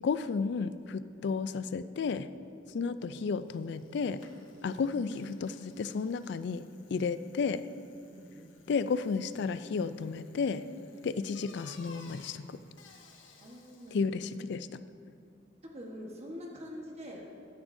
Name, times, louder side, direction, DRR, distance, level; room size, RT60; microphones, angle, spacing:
voice 1, 0.0-2.3 2.7-4.2 4.6-7.6 8.7-10.6 11.0-12.6 13.9-14.8, left 5 dB, 60° left, 14 dB, 0.3 m, -32 dB
Bicycle, 3.0-3.1 3.3-14.1, left 4 dB, 85° left, 1.1 m, -59 dB
voice 2, 8.1-8.5 13.4-14.2 15.6-17.4, equal, 35° right, -1 dB, 1.2 m, -45 dB
14.0 x 9.7 x 2.6 m, 2.4 s
head